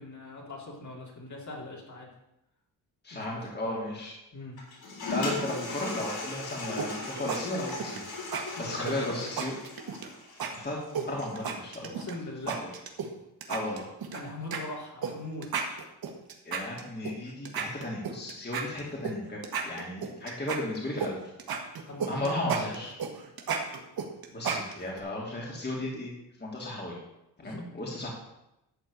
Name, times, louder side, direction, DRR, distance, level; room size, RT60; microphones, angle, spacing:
voice 1, 0.0-2.1 3.1-3.8 4.3-4.6 8.6-9.3 11.9-12.6 14.1-15.5 21.9-22.8 27.4-27.6, left 2 dB, 45° left, -3 dB, 3.9 m, -41 dB
voice 2, 3.0-4.1 5.1-8.0 8.6-9.5 10.5-10.8 11.0-11.8 12.5-12.6 13.5-13.9 16.4-21.2 22.1-22.9 24.3-26.1 26.4-27.0 27.4-28.1, left 1 dB, 25° left, -4 dB, 3.1 m, -34 dB
Toilet flush, 4.6-11.5, left 3 dB, 65° left, 4.0 m, -38 dB
sound 1, 6.8-7.4 7.7-8.0 8.3-8.4 8.9-10.1 10.4-10.5 10.9-12.1 12.5-13.1 13.4-14.2 14.5-14.6 15.0-15.1 15.4-17.1 17.4-19.1 19.4-21.1 21.4-25.0, right 6 dB, 65° right, 1.9 m, -33 dB
12.5 x 4.6 x 8.4 m, 0.87 s
cardioid pair, 85°, 39 cm